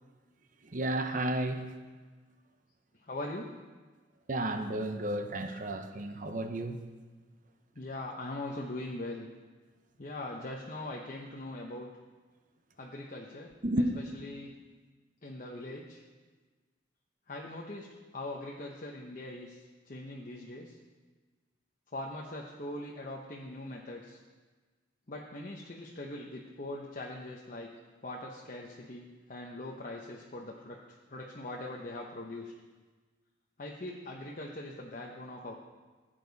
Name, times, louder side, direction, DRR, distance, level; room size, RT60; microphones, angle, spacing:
voice 1, 0.7-1.7 4.3-6.8 13.6-13.9, right 1 dB, 45° right, 0.8 m, -32 dB
voice 2, 3.0-3.6 7.7-9.3 10.0-11.9 12.8-13.5 13.8-13.9 14.1-14.5 15.2-16.0 17.3-20.8 21.9-24.2 25.1-27.7 28.0-30.8 31.1-32.5 33.6-35.5, left 1 dB, 45° left, 0.9 m, -41 dB
15.5 x 9.0 x 4.1 m
head